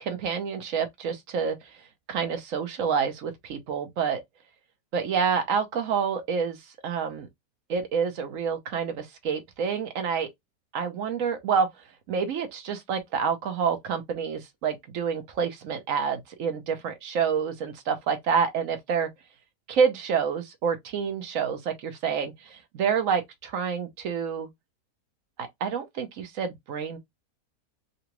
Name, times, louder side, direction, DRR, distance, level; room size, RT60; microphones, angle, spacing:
voice 1, 0.0-1.6 2.1-4.2 4.9-6.6 6.8-7.3 7.7-10.3 10.7-11.7 12.1-19.1 19.7-24.5 25.6-27.0, right 6 dB, 60° right, 1.1 m, -28 dB
3.9 x 2.3 x 2.9 m
omnidirectional pair, 1.7 m